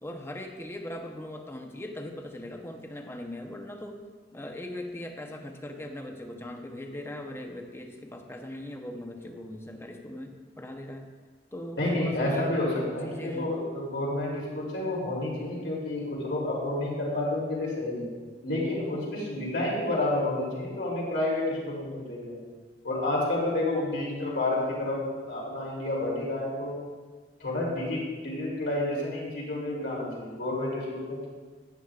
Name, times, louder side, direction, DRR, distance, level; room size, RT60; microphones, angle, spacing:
voice 1, 0.0-4.0 4.3-11.1 11.5-12.5 13.0-13.5, left 1 dB, 15° left, 4 dB, 0.7 m, -40 dB
voice 2, 11.8-18.1 18.4-22.4 22.8-25.0 25.3-26.7 27.4-28.0 28.2-31.3, left 1 dB, 75° left, -4 dB, 2.9 m, -30 dB
11.5 x 9.1 x 2.4 m, 1.4 s
head